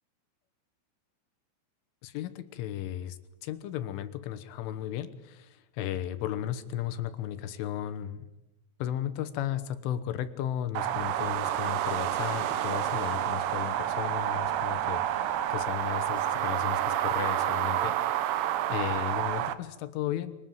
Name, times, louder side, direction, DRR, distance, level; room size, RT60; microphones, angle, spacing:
voice 1, 2.0-8.3 8.8-20.4, left 11 dB, 75° left, 12 dB, 3.4 m, -35 dB
sound 1, 10.8-19.5, right 12 dB, 90° right, 4.0 m, -29 dB
sound 2, 11.4-17.6, left 5 dB, 60° left, 1.4 m, -48 dB
23.0 x 20.5 x 9.3 m, 0.95 s
omnidirectional pair, 6.0 m